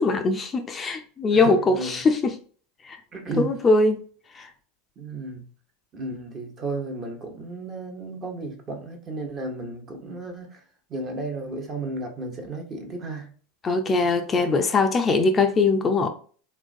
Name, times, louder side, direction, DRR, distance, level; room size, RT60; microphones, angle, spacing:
voice 1, 0.0-2.4 2.8-3.0 3.4-4.0 4.3-4.5 13.6-16.1, left 3 dB, 25° left, 0.4 m, -21 dB
voice 2, 1.3-2.0 3.1-3.6 5.0-5.4 5.9-10.6 10.9-13.3, right 2 dB, 35° right, 0.9 m, -33 dB
3.1 x 2.3 x 2.5 m
hypercardioid pair, 95°, 0 cm